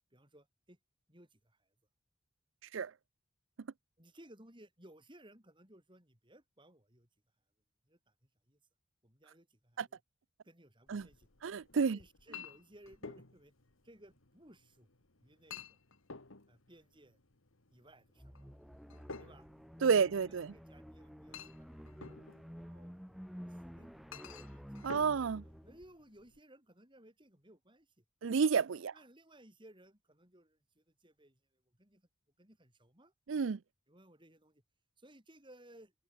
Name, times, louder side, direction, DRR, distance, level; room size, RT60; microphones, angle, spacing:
voice 1, 0.1-0.8 1.1-1.7 4.0-7.1 7.9-8.6 9.0-10.0 10.4-11.3 11.7-13.5 13.8-14.9 15.2-15.8 16.5-17.2 17.7-18.3 19.2-19.5 19.8-22.9 23.3-28.0 28.7-32.1 32.4-33.1 33.9-34.6 35.0-35.9, right 1 dB, 25° right, 6.8 m, -61 dB
Chink clink, 10.9-26.4, left 5 dB, 80° left, 2.2 m, -53 dB
voice 2, 11.4-12.0 19.8-20.5 24.8-25.4 28.2-28.9 33.3-33.6, right 6 dB, 70° right, 0.5 m, -30 dB
sound 1, 18.2-25.8, equal, ahead, 0.7 m, -51 dB
head